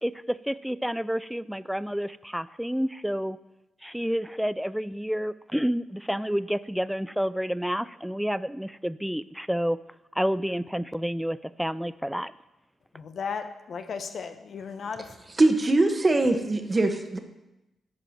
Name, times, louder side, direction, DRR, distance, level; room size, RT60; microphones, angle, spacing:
voice 1, 0.0-3.4 3.8-9.8 10.2-12.3, equal, 5° right, 16 dB, 0.4 m, -29 dB
voice 2, 12.9-15.2, left 5 dB, 65° left, 8 dB, 0.9 m, -35 dB
voice 3, 15.4-17.2, right 2 dB, 35° right, 6 dB, 1.4 m, -22 dB
10.5 x 4.8 x 7.4 m, 0.94 s
supercardioid pair, 45°, 0 cm